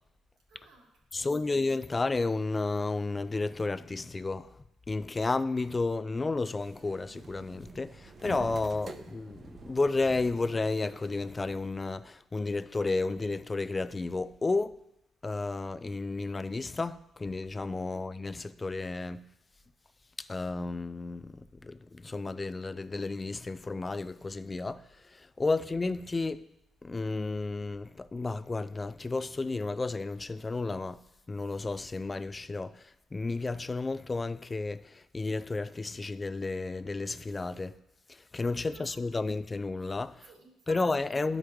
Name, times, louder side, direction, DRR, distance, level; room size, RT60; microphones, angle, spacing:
voice 1, 0.5-1.7 17.8-18.1 25.4-25.7 38.6-39.4 40.2-41.4, right 2 dB, 80° right, 2.0 m, -58 dB
voice 2, 1.1-4.5 4.9-14.8 15.2-19.2 20.2-24.8 25.1-26.4 26.8-31.0 31.3-37.7 38.3-40.3 40.7-41.4, left 3 dB, 25° left, 0.3 m, -32 dB
sound 1, 6.6-11.7, right 4 dB, 45° right, 0.7 m, -48 dB
12.5 x 5.0 x 3.2 m
cardioid pair, 90°, 0 cm